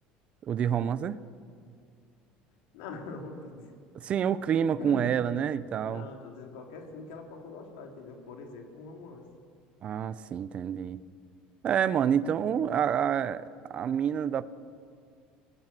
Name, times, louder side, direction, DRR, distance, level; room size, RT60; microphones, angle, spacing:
voice 1, 0.5-1.2 3.9-6.1 9.8-11.0 11.6-14.4, right 8 dB, 35° right, 16 dB, 0.8 m, -28 dB
voice 2, 2.7-3.7 4.8-5.1 5.9-9.3, left 3 dB, 85° left, 2 dB, 4.1 m, -43 dB
29.5 x 18.5 x 7.7 m, 2.2 s
cardioid pair, 135°, 3 cm